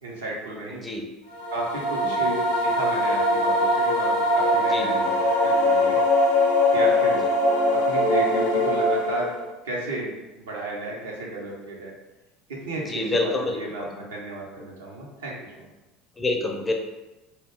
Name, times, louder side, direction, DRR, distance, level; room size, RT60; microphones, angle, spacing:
voice 1, 0.0-0.8 1.5-5.1 5.4-6.0 6.7-7.2 7.7-9.3 9.6-11.9 12.5-15.7, right 2 dB, 75° right, -3 dB, 0.7 m, -33 dB
sound 1, 1.3-9.5, left 1 dB, 80° left, 0.5 m, -22 dB
voice 2, 4.7-5.0 12.9-13.9 16.2-16.7, left 2 dB, 20° left, 3 dB, 0.4 m, -27 dB
2.3 x 2.2 x 3.5 m, 1.1 s
figure-of-eight pair, 70°, 0 cm